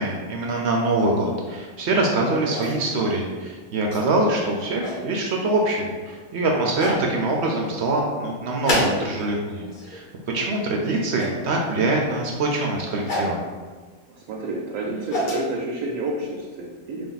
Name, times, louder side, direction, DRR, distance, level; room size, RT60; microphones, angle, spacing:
voice 1, 0.0-10.0 10.3-13.4, right 2 dB, 65° right, 0 dB, 0.7 m, -24 dB
sound 1, 2.5-3.0 3.9-4.0 4.6-5.0 6.1-6.2 6.8-7.0 8.6-9.3 9.6-10.0 11.1-11.4 13.1-13.4 14.7-15.4, left 1 dB, 45° left, 0.7 m, -27 dB
voice 2, 14.3-17.1, right 2 dB, 90° right, -2 dB, 1.0 m, -29 dB
3.4 x 2.6 x 3.9 m, 1.4 s
omnidirectional pair, 1.5 m